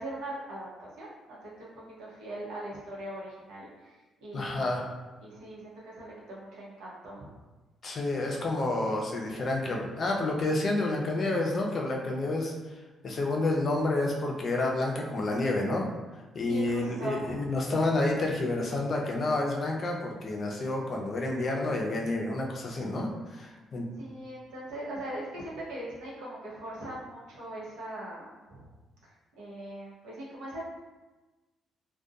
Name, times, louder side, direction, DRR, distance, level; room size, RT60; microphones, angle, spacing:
voice 1, 0.0-4.9 5.2-7.3 9.3-9.4 16.5-17.5 24.0-28.7 29.0-30.6, right 1 dB, 90° right, -6 dB, 0.8 m, -40 dB
voice 2, 4.3-4.8 7.8-12.5 13.0-15.9 16.3-23.8, left 2 dB, 50° left, 0 dB, 0.4 m, -29 dB
2.6 x 2.2 x 2.3 m, 1.2 s
cardioid pair, 90°, 0 cm